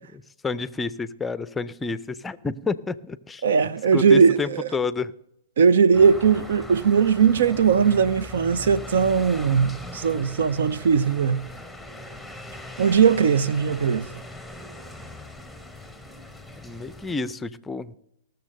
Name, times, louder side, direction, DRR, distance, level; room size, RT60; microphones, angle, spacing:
voice 1, 0.4-3.4 3.9-5.1 16.6-18.0, left 4 dB, 10° left, 0.5 m, -29 dB
voice 2, 3.4-4.7 5.6-11.4 12.8-14.1, right 6 dB, 75° right, 0.7 m, -19 dB
sound 1, 5.9-17.1, left 1 dB, 5° right, 1.1 m, -40 dB
18.0 x 6.9 x 6.5 m
hypercardioid pair, 135°, 0 cm